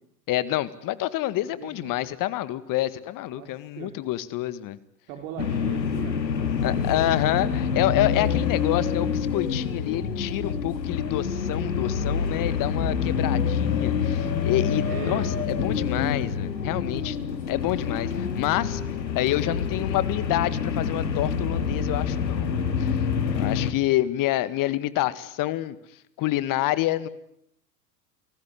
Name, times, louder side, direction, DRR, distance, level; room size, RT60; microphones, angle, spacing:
voice 1, 0.3-4.8 6.6-17.2 17.5-18.8 19.1-23.1 23.3-25.8 26.2-27.1, left 15 dB, 40° left, 17 dB, 2.0 m, -27 dB
voice 2, 1.6-1.9 3.3-3.9 5.1-7.1 14.9-15.2, right 9 dB, 60° right, 5 dB, 4.8 m, -39 dB
sound 1, 5.4-23.7, left 6 dB, 85° left, 2.8 m, -27 dB
30.0 x 19.0 x 10.0 m, 0.74 s
hypercardioid pair, 95°, 49 cm